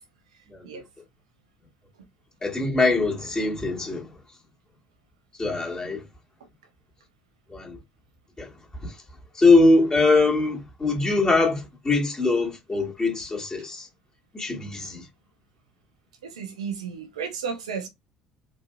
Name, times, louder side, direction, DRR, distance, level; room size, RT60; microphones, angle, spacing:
voice 1, 2.4-4.1 5.4-6.0 7.5-7.8 8.4-8.5 8.8-8.9 9.4-13.9 14.3-15.0, left 3 dB, 25° left, 1.9 m, -22 dB
voice 2, 16.2-17.9, right 6 dB, 85° right, 0.7 m, -33 dB
4.0 x 2.8 x 2.2 m
hypercardioid pair, 55°, 3 cm